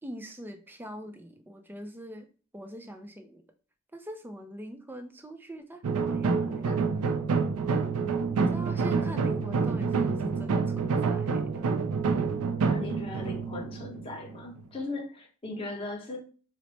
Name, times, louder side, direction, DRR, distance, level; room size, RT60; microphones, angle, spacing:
voice 1, 0.0-2.3 2.5-3.4 3.9-7.1 8.5-11.6, equal, 10° right, 6 dB, 0.4 m, -42 dB
sound 1, 5.8-14.6, right 5 dB, 90° right, 0.4 m, -28 dB
voice 2, 12.6-16.2, left 2 dB, 25° left, 0 dB, 0.9 m, -38 dB
3.0 x 2.0 x 4.1 m, 0.38 s
head